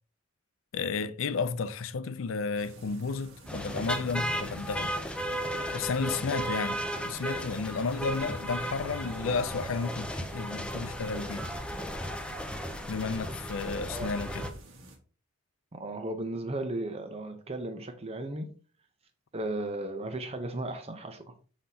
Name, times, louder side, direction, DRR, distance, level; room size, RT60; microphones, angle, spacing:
voice 1, 0.7-4.9 5.7-11.5 12.9-14.4, left 4 dB, 75° left, 0.5 m, -32 dB
sound 1, 2.6-15.0, right 1 dB, 90° right, 1.6 m, -52 dB
sound 2, 3.5-14.5, equal, 5° left, 0.6 m, -35 dB
voice 2, 13.8-14.2 15.7-18.5 19.3-21.3, right 2 dB, 30° right, 0.6 m, -35 dB
6.5 x 5.7 x 2.8 m
head